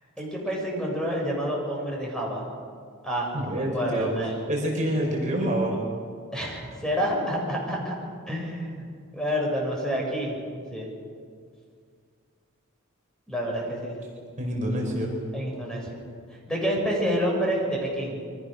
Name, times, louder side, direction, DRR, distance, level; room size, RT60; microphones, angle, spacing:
voice 1, 0.2-2.4 3.0-4.5 6.3-8.0 8.3-8.9 9.1-10.4 10.7-10.9 13.3-13.9 15.3-16.0 16.5-18.2, equal, 5° left, -2 dB, 6.8 m, -28 dB
voice 2, 3.3-4.1 4.5-5.8 14.4-15.1, right 1 dB, 35° right, -1 dB, 5.2 m, -27 dB
28.0 x 24.5 x 6.7 m, 2.1 s
head